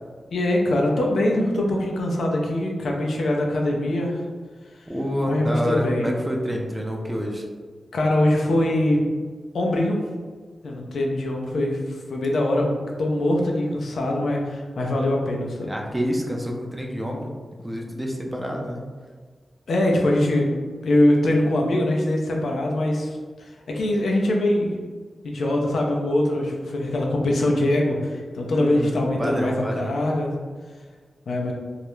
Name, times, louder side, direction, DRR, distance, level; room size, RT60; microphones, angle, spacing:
voice 1, 0.3-4.2 5.3-6.1 7.9-9.0 9.5-10.0 10.6-12.7 13.0-15.7 19.7-20.5 20.8-24.7 25.2-30.3 31.3-31.5, left 1 dB, 85° left, 0 dB, 0.4 m, -22 dB
voice 2, 4.9-7.4 15.7-17.3 17.6-18.8 28.5-30.0, equal, 15° right, 0 dB, 0.4 m, -28 dB
2.3 x 2.1 x 3.0 m, 1.5 s
wide cardioid pair, 95°, 0 cm